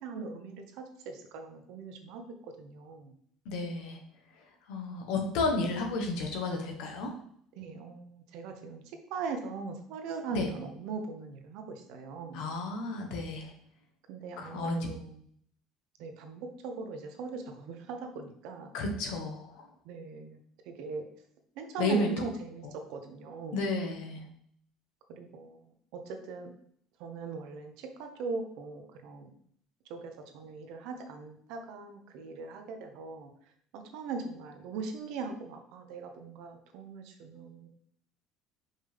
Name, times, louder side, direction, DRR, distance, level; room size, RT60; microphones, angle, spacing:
voice 1, 0.0-2.2 2.6-3.1 7.6-8.8 9.1-12.5 14.1-15.2 16.0-18.7 19.8-20.4 20.7-21.0 21.6-23.6 25.1-25.6 25.9-26.5 27.0-29.3 29.9-33.3 33.7-37.7, right 4 dB, 60° right, 5 dB, 1.1 m, -40 dB
voice 2, 3.4-4.0 4.7-7.1 10.3-10.5 12.3-13.5 14.4-14.8 18.7-19.7 21.8-22.1 23.5-24.2, left 2 dB, 70° left, 2 dB, 1.5 m, -32 dB
5.6 x 5.1 x 3.6 m, 0.64 s
cardioid pair, 170°, 0 cm